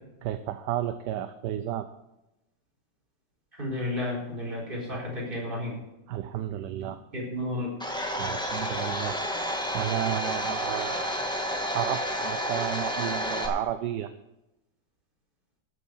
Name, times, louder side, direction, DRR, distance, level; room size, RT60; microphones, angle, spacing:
voice 1, 0.2-1.9 4.9-5.0 6.1-7.0 8.2-9.2 9.7-11.3 11.7-14.1, right 11 dB, 70° right, 11 dB, 1.2 m, -32 dB
voice 2, 3.6-5.7 6.8-7.7, left 1 dB, 25° right, -4 dB, 4.6 m, -32 dB
Domestic sounds home sounds, 7.8-13.5, equal, 5° left, 1.5 m, -30 dB
13.0 x 8.1 x 6.4 m, 0.93 s
omnidirectional pair, 2.0 m